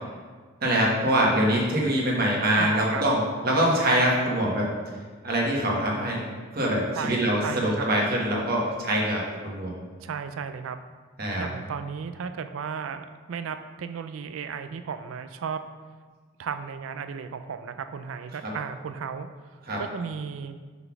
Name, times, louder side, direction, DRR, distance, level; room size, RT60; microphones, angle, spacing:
voice 1, 0.6-4.7 5.2-6.2 6.5-9.7 11.2-11.5 19.7-19.8, right 1 dB, 50° right, -2 dB, 1.3 m, -24 dB
voice 2, 2.6-3.0 6.9-8.0 10.0-10.8 11.4-15.6 16.4-19.3 19.8-20.6, right 6 dB, 85° right, 9 dB, 0.4 m, -34 dB
5.5 x 4.0 x 5.9 m, 1.5 s
head